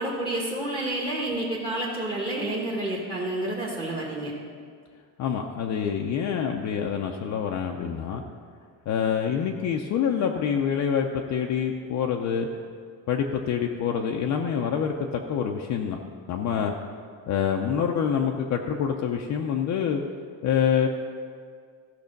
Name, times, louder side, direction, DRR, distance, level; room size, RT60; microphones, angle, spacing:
voice 1, 0.0-4.3, right 1 dB, 15° right, -3 dB, 1.0 m, -29 dB
voice 2, 5.2-8.2 8.9-12.5 13.1-16.0 16.3-16.7 17.3-20.0 20.4-20.9, left 7 dB, 40° left, 2 dB, 0.5 m, -26 dB
14.5 x 6.1 x 5.2 m, 2.1 s
cardioid pair, 165°, 43 cm